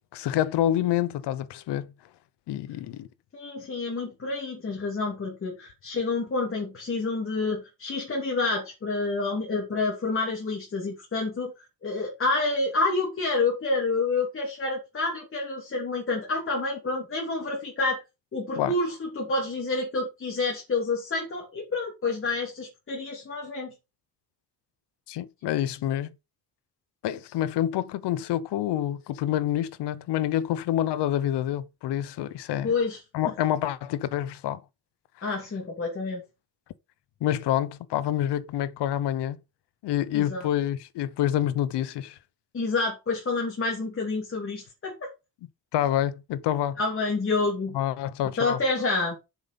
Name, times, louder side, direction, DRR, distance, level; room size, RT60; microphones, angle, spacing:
voice 1, 0.1-1.9 2.5-3.1 18.6-18.7 25.1-26.1 27.0-32.7 33.1-34.6 37.2-39.4 39.8-42.2 45.7-46.8 47.7-48.6, left 12 dB, 85° left, 1.0 m, -27 dB
voice 2, 3.3-11.5 11.8-18.0 18.3-23.7 32.6-33.0 35.2-36.2 40.1-40.5 42.5-45.1 46.8-47.8 48.4-49.2, left 3 dB, 30° left, 3.2 m, -28 dB
7.5 x 5.5 x 7.0 m
cardioid pair, 145°, 40 cm